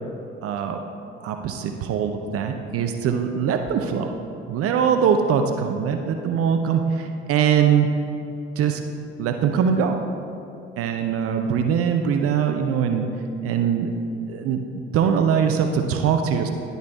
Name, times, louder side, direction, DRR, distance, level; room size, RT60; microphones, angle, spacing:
voice 1, 0.4-0.8 1.2-4.1 4.5-7.9 8.6-8.8 9.2-10.0 10.8-13.1 13.4-13.9 14.3-16.5, right 7 dB, 50° right, 6 dB, 0.6 m, -22 dB
10.5 x 4.0 x 4.6 m, 2.7 s
figure-of-eight pair, 45°, 29 cm